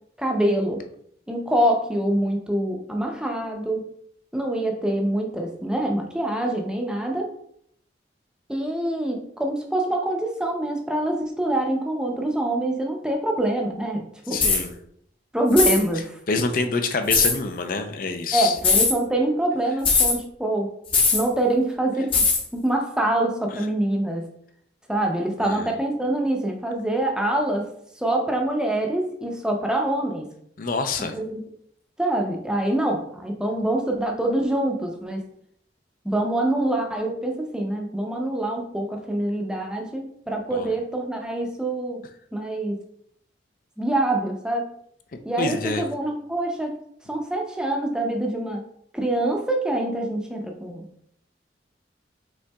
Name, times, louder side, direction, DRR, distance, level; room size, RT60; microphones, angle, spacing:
voice 1, 0.2-0.8 1.3-3.9 4.3-7.3 8.5-14.4 15.3-16.2 18.3-20.7 21.1-22.2 22.5-24.3 24.9-27.7 28.0-30.3 31.1-31.4 32.0-35.2 36.0-42.0 42.3-42.8 43.8-44.7 45.2-46.7 47.1-48.6 48.9-50.8, right 1 dB, 5° right, 2 dB, 0.6 m, -25 dB
voice 2, 14.3-14.7 16.3-18.6 25.4-25.7 30.6-31.1 40.5-40.7 45.4-45.9, left 4 dB, 50° left, 7 dB, 0.5 m, -26 dB
sound 1, 14.4-14.6 15.5-15.8 17.1-17.3 18.6-18.9 19.8-20.2 20.9-21.3 22.1-22.4, left 4 dB, 30° left, 0.8 m, -19 dB
5.4 x 3.8 x 2.3 m, 0.69 s
head